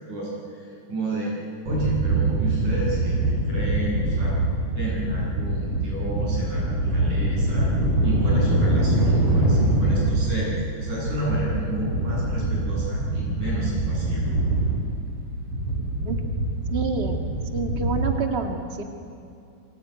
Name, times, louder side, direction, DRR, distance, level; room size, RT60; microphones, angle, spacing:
voice 1, 0.1-1.3 1.7-3.2 3.5-4.4 4.7-7.7 8.0-14.2, right 2 dB, 85° right, -4 dB, 9.4 m, -31 dB
sound 1, 1.7-18.1, right 1 dB, 45° right, 8.3 m, -24 dB
voice 2, 16.7-17.2 17.5-18.8, right 4 dB, 25° right, 3 dB, 1.8 m, -28 dB
27.0 x 23.0 x 9.6 m, 2.5 s
omnidirectional pair, 3.5 m